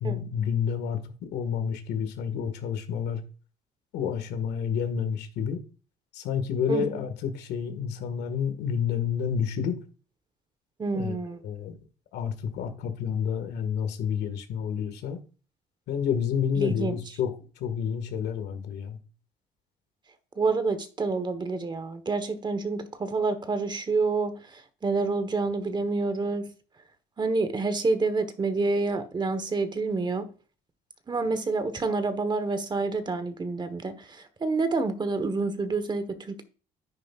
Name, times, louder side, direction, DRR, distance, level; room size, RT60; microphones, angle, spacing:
voice 1, 0.0-1.0 1.3-3.2 3.9-5.6 6.1-9.8 10.9-11.1 11.4-11.8 12.1-15.2 15.9-19.0, left 7 dB, 80° left, 1.8 m, -29 dB
voice 2, 10.8-11.4 16.5-17.0 20.4-26.5 27.2-30.3 31.1-36.4, right 3 dB, 25° right, 1.2 m, -28 dB
10.0 x 9.4 x 2.5 m
cardioid pair, 110°, 17 cm